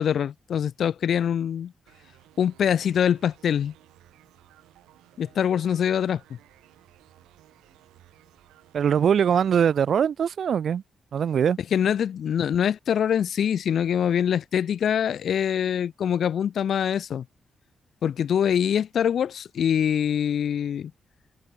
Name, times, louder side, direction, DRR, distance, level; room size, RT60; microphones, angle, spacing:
voice 1, 0.0-1.7 2.4-3.7 5.2-6.2 11.7-17.3 18.0-20.9, left 8 dB, 65° left, 0.3 m, -24 dB
sound 1, 1.9-9.9, right 15 dB, 80° right, 2.8 m, -56 dB
voice 2, 8.7-10.8 11.1-11.6, right 8 dB, 65° right, 0.5 m, -22 dB
hypercardioid pair, 40°, 0 cm